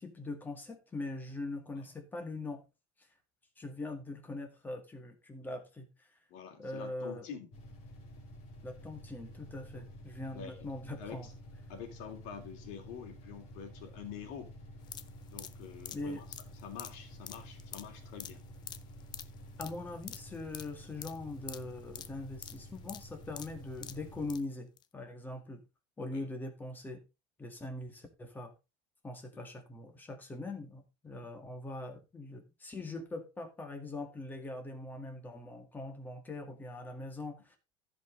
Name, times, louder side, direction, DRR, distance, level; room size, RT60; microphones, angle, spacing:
voice 1, 0.0-2.6 3.6-6.1 6.6-7.3 8.6-11.3 15.9-16.2 19.6-25.6 26.0-27.0 27.4-28.5 29.0-37.6, left 2 dB, 10° left, 5 dB, 1.9 m, -42 dB
voice 2, 6.3-7.5 9.8-9.9 10.3-10.7 11.0-11.3 11.7-14.5 15.3-16.2 16.6-18.4 26.1-26.2 29.3-29.4 31.2-31.3, left 7 dB, 65° left, 4 dB, 3.1 m, -46 dB
sound 1, 7.5-24.4, equal, 45° left, 3.1 m, -51 dB
sound 2, 14.8-24.4 24.8-24.9, left 10 dB, 30° left, 0.6 m, -48 dB
15.0 x 5.3 x 3.9 m, 0.27 s
cardioid pair, 160°, 15 cm